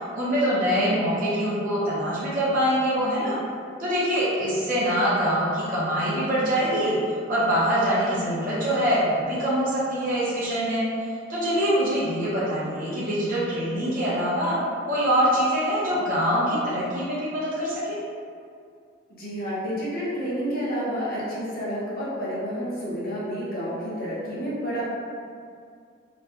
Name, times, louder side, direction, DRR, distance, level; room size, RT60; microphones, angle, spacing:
voice 1, 0.1-3.4 3.8-14.5 14.8-18.0, equal, 50° right, -9 dB, 0.7 m, -24 dB
voice 2, 19.1-24.9, equal, 55° left, -8 dB, 0.9 m, -30 dB
3.0 x 2.2 x 2.8 m, 2.3 s
head